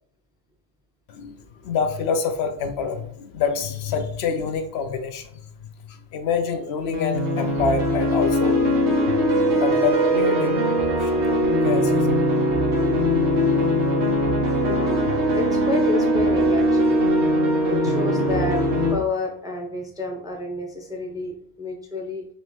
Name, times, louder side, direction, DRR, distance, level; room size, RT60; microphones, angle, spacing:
voice 1, 1.6-5.3 6.1-8.6 9.6-10.6 11.0-12.2, left 5 dB, 75° left, 7 dB, 0.8 m, -26 dB
sound 1, 6.9-18.9, equal, 85° right, 1.2 m, -21 dB
voice 2, 14.6-17.0 17.7-18.6 18.9-22.3, left 2 dB, 5° right, 0 dB, 0.6 m, -30 dB
4.2 x 3.0 x 3.1 m, 0.66 s
omnidirectional pair, 1.1 m